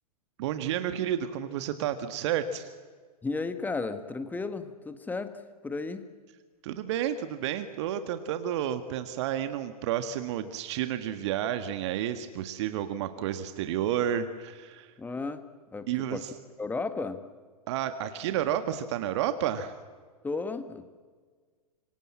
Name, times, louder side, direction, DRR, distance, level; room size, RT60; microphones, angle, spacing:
voice 1, 0.4-2.7 6.6-14.9 15.9-16.3 17.7-19.7, right 10 dB, 45° right, 9 dB, 1.6 m, -31 dB
voice 2, 3.2-6.0 15.0-15.4 15.7-16.2 16.6-17.2 20.2-21.0, left 3 dB, 10° left, 10 dB, 1.6 m, -34 dB
26.5 x 24.0 x 7.6 m, 1.5 s
figure-of-eight pair, 100°, 20 cm